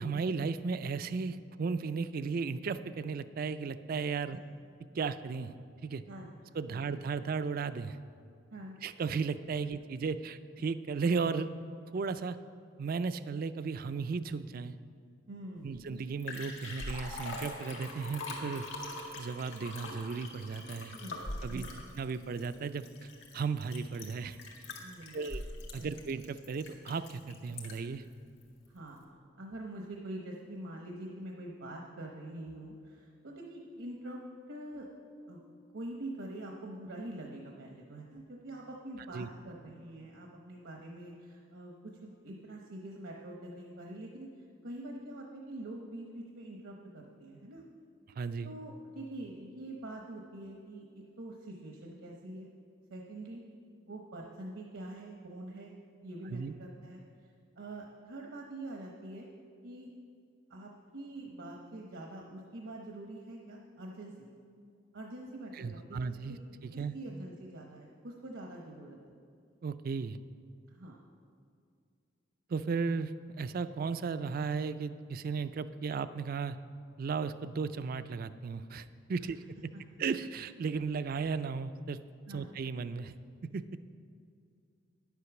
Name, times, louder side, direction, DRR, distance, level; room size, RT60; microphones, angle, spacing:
voice 1, 0.0-4.4 4.9-5.5 5.8-6.0 6.5-8.0 8.8-11.5 11.9-12.4 12.8-14.7 15.6-18.7 19.2-20.9 21.4-21.7 22.0-22.9 23.3-24.4 25.1-25.4 25.7-28.0 39.1-39.3 48.2-48.5 56.3-56.6 65.5-66.9 69.6-70.2 72.5-76.6 77.0-79.4 80.0-82.0 82.3-83.1 83.5-83.8, right 5 dB, 45° right, 13 dB, 0.3 m, -35 dB
voice 2, 15.3-15.8 20.9-21.2 21.5-21.7 24.8-25.3 25.8-26.0 28.7-34.2 34.5-34.9 35.3-35.4 35.7-44.3 44.6-47.6 48.4-52.5 52.9-53.4 53.9-55.7 56.0-57.3 57.6-59.3 59.6-59.9 60.5-64.1 64.9-66.0 66.3-66.4 66.7-69.1 70.7-71.0 79.2-79.4 79.7-80.0 82.3-82.5, right 1 dB, 75° right, 0 dB, 0.9 m, -45 dB
Liquid, 15.7-15.8 16.0-28.0 28.4-28.5, left 2 dB, 75° left, 1.9 m, -43 dB
10.0 x 8.3 x 5.9 m, 2.4 s
head